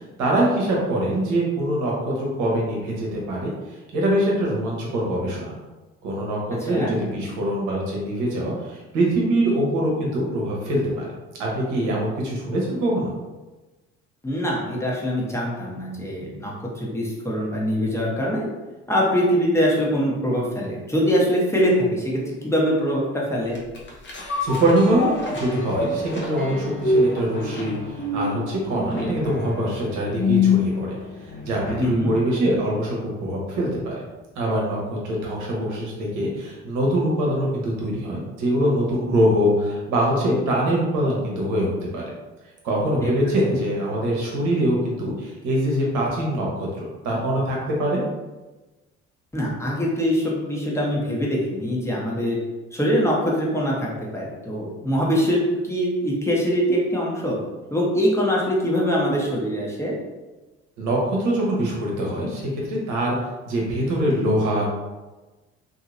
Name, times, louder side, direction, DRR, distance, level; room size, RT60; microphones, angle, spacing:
voice 1, 0.0-5.5 6.0-11.1 11.4-13.1 24.4-27.8 28.1-31.0 31.4-34.0 34.4-42.0 42.6-48.0 60.8-63.2 63.5-64.7, right 1 dB, 60° right, -3 dB, 1.1 m, -23 dB
voice 2, 14.2-18.5 18.9-23.6 31.8-32.1 43.0-43.1 43.5-43.6 49.3-52.4 52.7-57.4 57.7-59.9, equal, 10° left, -4 dB, 1.0 m, -23 dB
sound 1, 23.5-32.1 32.5-32.6, left 3 dB, 35° left, 0.9 m, -26 dB
2.9 x 2.8 x 2.6 m, 1.2 s
figure-of-eight pair, 55°, 33 cm